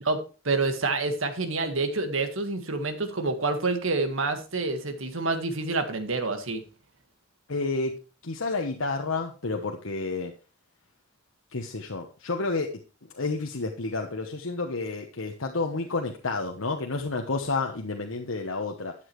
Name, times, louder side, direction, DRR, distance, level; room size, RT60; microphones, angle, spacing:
voice 1, 0.4-6.6, right 3 dB, 80° right, 7 dB, 1.7 m, -27 dB
voice 2, 7.5-8.0 8.2-10.3 11.5-12.7 13.1-18.9, left 3 dB, 85° left, 3 dB, 1.1 m, -30 dB
13.0 x 8.7 x 3.2 m, 0.33 s
head